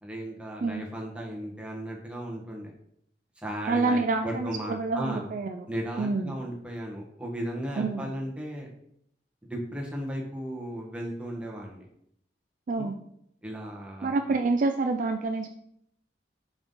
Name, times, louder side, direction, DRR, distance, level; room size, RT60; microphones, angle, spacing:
voice 1, 0.0-2.7 3.4-5.3 5.7-8.7 9.4-11.9 12.8-12.9 13.4-14.1, equal, 5° right, -2 dB, 1.2 m, -35 dB
voice 2, 3.7-5.7 6.0-6.3 7.8-8.1 12.7-13.0 14.0-15.5, right 3 dB, 45° right, 6 dB, 0.4 m, -27 dB
5.4 x 4.6 x 3.8 m, 0.72 s
head